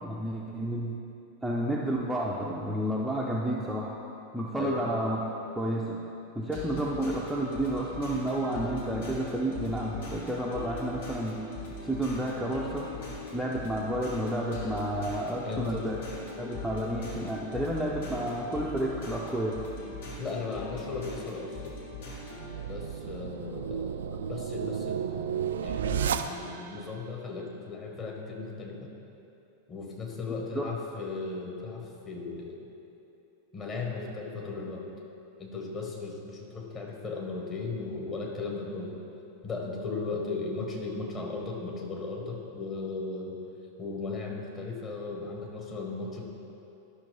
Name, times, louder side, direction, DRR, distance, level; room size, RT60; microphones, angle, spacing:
voice 1, 0.0-0.9 1.4-4.0 4.3-5.2 5.6-6.0 6.3-11.4 11.8-12.9 13.3-16.0 16.4-19.6 30.5-30.6, right 1 dB, 5° right, -4 dB, 0.6 m, -31 dB
voice 2, 4.5-4.9 15.4-15.9 20.2-21.8 22.7-25.3 25.6-28.9 29.7-32.6 33.5-34.9 35.4-38.9 39.4-43.4 43.8-46.2, left 3 dB, 25° left, -1 dB, 1.5 m, -36 dB
sound 1, 6.5-22.5, left 2 dB, 60° left, 1.7 m, -40 dB
sound 2, 22.2-26.8, right 8 dB, 60° right, 0.3 m, -32 dB
12.0 x 5.9 x 3.4 m, 2.8 s
figure-of-eight pair, 90°, 0 cm